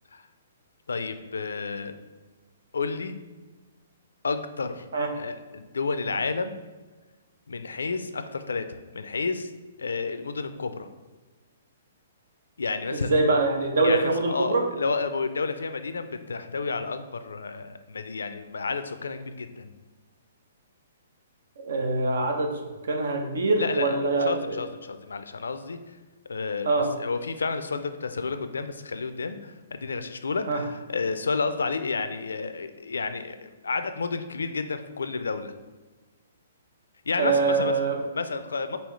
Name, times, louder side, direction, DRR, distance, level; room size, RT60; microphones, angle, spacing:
voice 1, 0.9-2.0 2.7-3.2 4.2-4.9 5.2-6.6 7.5-8.6 8.9-9.5 9.8-10.9 12.6-13.2 13.8-19.7 23.6-25.8 26.3-35.5 37.1-37.7 38.1-38.8, left 4 dB, 90° left, 10 dB, 0.3 m, -31 dB
voice 2, 12.9-14.6 21.6-22.5 22.9-24.6 26.7-26.9 30.5-30.6 37.2-38.0, right 3 dB, 75° right, 4 dB, 0.8 m, -24 dB
5.4 x 2.8 x 3.1 m, 1.3 s
hypercardioid pair, 140°, 0 cm